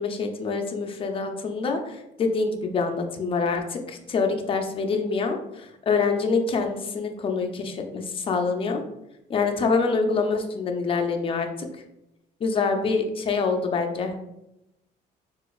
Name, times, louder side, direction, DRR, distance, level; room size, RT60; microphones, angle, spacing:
voice 1, 0.0-8.8 9.3-11.7 12.4-14.2, left 4 dB, 35° left, 4 dB, 0.5 m, -26 dB
3.8 x 2.4 x 2.3 m, 0.87 s
cardioid pair, 110°, 17 cm